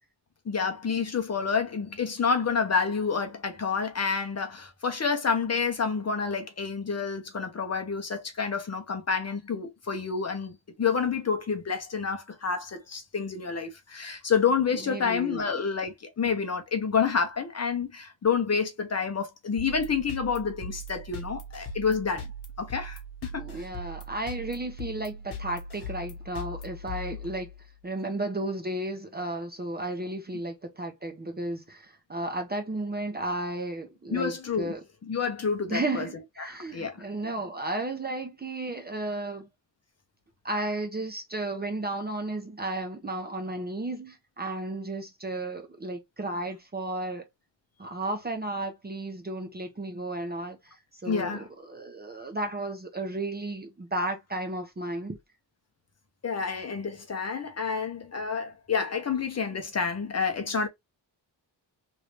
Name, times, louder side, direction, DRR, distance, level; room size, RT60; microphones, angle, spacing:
voice 1, 0.5-22.3 22.6-23.4 34.1-34.7 35.1-36.1 36.4-37.0 51.1-51.5 56.2-60.7, left 5 dB, 35° left, 0.7 m, -29 dB
voice 2, 14.7-15.6 23.3-27.5 27.8-34.8 35.7-39.5 40.4-47.2 47.8-55.2, right 2 dB, 20° right, 0.6 m, -33 dB
sound 1, 19.6-27.8, left 1 dB, 60° left, 1.1 m, -40 dB
3.1 x 2.6 x 3.1 m
wide cardioid pair, 150°, 45 cm